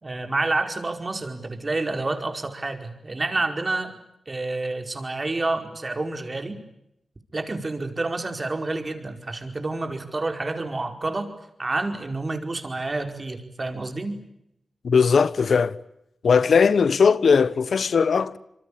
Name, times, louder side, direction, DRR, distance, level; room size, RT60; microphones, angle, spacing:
voice 1, 0.0-3.9 4.3-6.6 7.3-11.3 11.6-14.2, right 2 dB, 40° right, 4.9 m, -28 dB
voice 2, 14.8-15.7 16.2-18.4, left 5 dB, 75° left, 1.0 m, -19 dB
26.5 x 23.5 x 8.7 m
cardioid pair, 45°, 0 cm